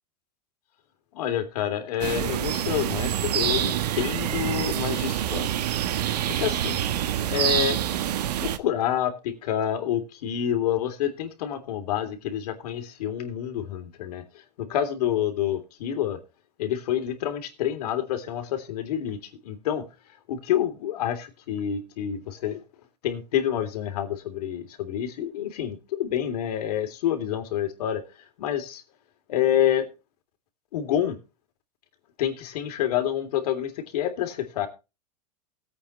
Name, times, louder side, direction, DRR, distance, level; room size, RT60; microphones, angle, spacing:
voice 1, 1.1-5.5 6.4-6.8 7.3-7.8 8.4-14.2 14.6-16.2 16.6-19.2 19.4-19.8 20.3-22.6 23.0-28.0 28.4-28.8 29.3-29.9 30.7-31.2 32.2-34.7, left 10 dB, 70° left, 3.3 m, -28 dB
sound 1, 2.0-8.6, right 11 dB, 75° right, 1.5 m, -26 dB
18.5 x 8.5 x 3.2 m
hypercardioid pair, 100°, 21 cm